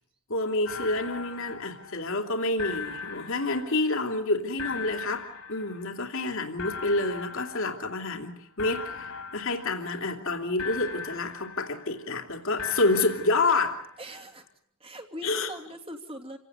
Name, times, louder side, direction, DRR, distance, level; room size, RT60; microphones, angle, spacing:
voice 1, 0.3-13.8 15.2-15.5, left 2 dB, 65° left, 4 dB, 3.0 m, -28 dB
sound 1, 0.6-2.3 2.6-4.2 4.6-6.2 6.6-8.3 8.6-10.3 10.6-12.2 12.6-14.2, left 6 dB, 85° left, 4.9 m, -40 dB
voice 2, 14.0-14.4 14.8-16.4, equal, 25° right, 4 dB, 2.8 m, -41 dB
28.5 x 18.0 x 8.0 m, 0.66 s
head